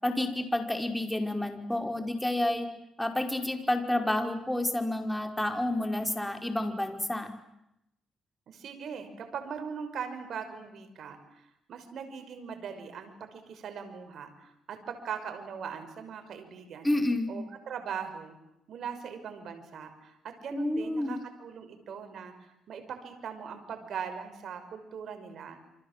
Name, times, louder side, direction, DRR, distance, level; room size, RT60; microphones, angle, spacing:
voice 1, 0.0-2.7 3.0-7.3 16.8-17.3 20.5-21.2, left 1 dB, 5° left, 5 dB, 5.2 m, -29 dB
voice 2, 8.5-16.9 17.3-18.3 18.7-25.6, right 7 dB, 65° right, 8 dB, 5.8 m, -40 dB
29.0 x 26.0 x 7.6 m, 0.82 s
cardioid pair, 90°, 0 cm